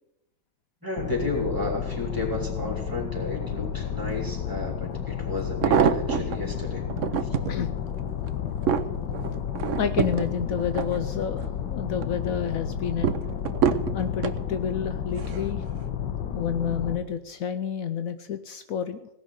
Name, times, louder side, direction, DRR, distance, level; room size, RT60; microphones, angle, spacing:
voice 1, 0.8-6.8, left 2 dB, 10° right, -1 dB, 3.2 m, -32 dB
sound 1, 1.0-17.0, left 8 dB, 65° left, 1.6 m, -31 dB
sound 2, 4.6-4.7 5.4-6.4 6.9-7.6 8.1-11.5 11.9-12.4 13.0-14.4 15.2-15.5 15.8-15.9, right 8 dB, 65° right, 0.7 m, -26 dB
voice 2, 9.8-13.1 13.9-15.6 16.3-19.1, left 7 dB, 85° left, 10 dB, 0.7 m, -30 dB
17.5 x 6.2 x 9.3 m, 0.92 s
omnidirectional pair, 2.2 m